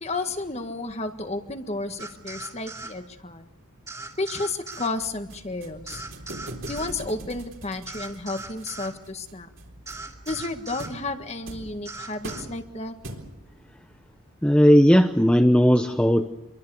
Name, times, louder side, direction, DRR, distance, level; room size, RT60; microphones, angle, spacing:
voice 1, 0.0-3.5 4.2-6.0 6.7-9.5 10.3-12.9, left 2 dB, 30° left, 7 dB, 1.7 m, -32 dB
sound 1, 2.0-2.9 3.9-4.9 5.9-6.9 7.9-8.9 9.9-10.9 11.8-12.4, right 3 dB, 15° right, 3.0 m, -39 dB
sound 2, 4.7-13.6, right 1 dB, 60° right, 4.0 m, -42 dB
voice 2, 14.4-16.3, equal, 5° left, 4 dB, 0.8 m, -17 dB
27.0 x 23.0 x 7.1 m, 0.88 s
head